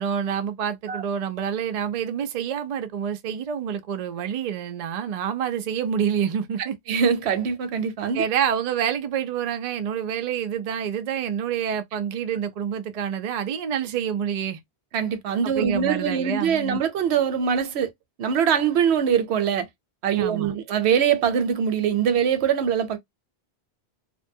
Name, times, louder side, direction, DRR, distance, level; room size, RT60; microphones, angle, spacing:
voice 1, 0.0-6.8 8.1-14.6 15.4-16.8 20.2-20.5, right 8 dB, 60° right, 0.4 m, -27 dB
voice 2, 6.9-8.2 14.9-17.9 18.2-19.7 20.0-23.0, right 7 dB, 80° right, 0.8 m, -23 dB
2.5 x 2.2 x 2.6 m
omnidirectional pair, 1.1 m